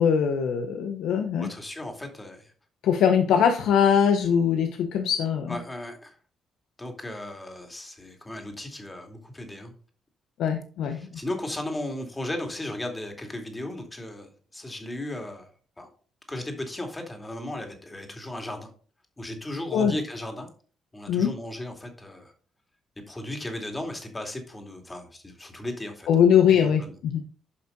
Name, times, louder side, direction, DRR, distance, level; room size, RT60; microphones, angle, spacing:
voice 1, 0.0-1.5 2.8-5.6 10.4-11.0 19.7-20.0 21.1-21.3 26.1-27.2, left 8 dB, 80° left, 6 dB, 0.9 m, -22 dB
voice 2, 1.4-2.5 5.5-6.1 6.8-9.7 10.8-15.5 15.8-15.9 16.3-18.7 19.2-20.5 20.9-22.3 23.1-26.1 26.5-26.9, left 1 dB, 15° left, 3 dB, 2.6 m, -36 dB
9.5 x 5.6 x 3.9 m, 0.41 s
cardioid pair, 90°, 0 cm